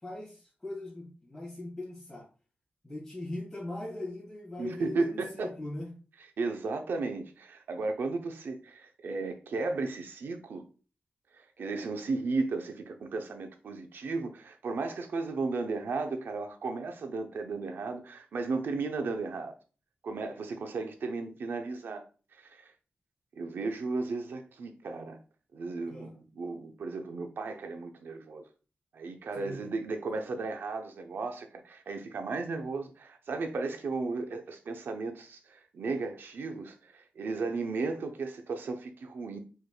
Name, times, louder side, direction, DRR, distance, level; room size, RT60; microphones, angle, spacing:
voice 1, 0.0-2.3 2.8-5.9 25.9-26.1 29.4-29.7, left 2 dB, 10° left, 2.2 m, -40 dB
voice 2, 4.6-5.5 6.4-10.7 11.3-19.5 20.0-22.0 22.3-22.7 23.3-25.2 25.5-28.4 28.9-39.4, right 3 dB, 90° right, 0.7 m, -35 dB
4.8 x 4.6 x 2.3 m
wide cardioid pair, 85°, 3 cm